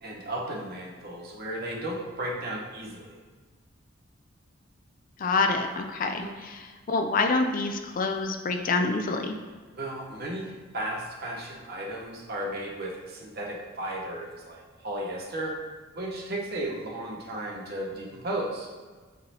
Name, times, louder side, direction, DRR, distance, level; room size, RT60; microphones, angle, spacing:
voice 1, 0.0-3.2 6.2-6.3 9.7-15.5 15.9-18.7, right 1 dB, 50° right, -3 dB, 1.1 m, -34 dB
voice 2, 5.2-9.3, left 3 dB, 40° left, 5 dB, 0.4 m, -27 dB
8.1 x 4.0 x 2.9 m, 1.4 s
head